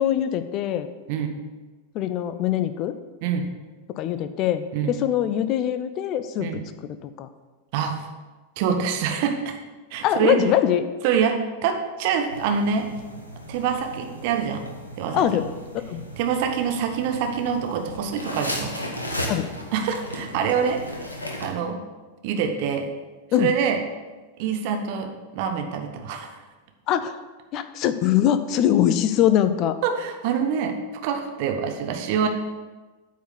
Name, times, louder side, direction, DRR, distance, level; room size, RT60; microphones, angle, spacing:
voice 1, 0.0-0.9 1.9-3.0 3.9-6.5 6.8-7.3 10.0-10.9 15.1-15.5 15.9-16.0 19.3-19.5 23.3-23.5 26.9-27.2 27.5-29.8, left 11 dB, 40° left, 11 dB, 0.5 m, -22 dB
voice 2, 7.7-8.0 8.6-9.6 9.9-10.4 11.0-12.9 13.5-14.6 15.0-15.2 16.2-18.7 19.7-20.8 21.4-21.8 22.2-22.9 23.4-23.8 24.4-26.3 29.8-30.8 31.0-32.3, right 7 dB, 45° right, 5 dB, 1.1 m, -25 dB
sound 1, 12.3-21.5, equal, 80° left, 1.2 m, -36 dB
8.9 x 4.7 x 6.8 m, 1.3 s
figure-of-eight pair, 90°, 0 cm